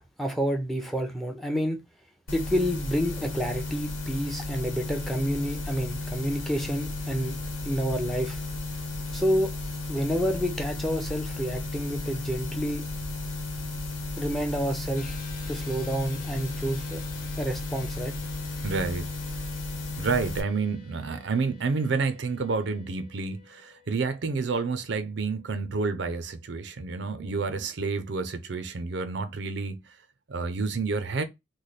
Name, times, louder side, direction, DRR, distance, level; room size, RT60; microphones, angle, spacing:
voice 1, 0.2-1.8 2.3-7.4 7.6-8.4 9.1-9.5 9.9-12.9 14.2-15.2 15.5-17.0 17.4-18.2, equal, ahead, 0.6 m, -29 dB
sound 1, 2.3-20.4, left 2 dB, 85° left, 1.2 m, -34 dB
sound 2, 14.9-27.5, left 5 dB, 45° left, 0.8 m, -53 dB
voice 2, 18.6-19.1 20.0-30.0 30.3-31.2, right 4 dB, 60° right, 0.5 m, -29 dB
3.2 x 2.1 x 4.0 m
head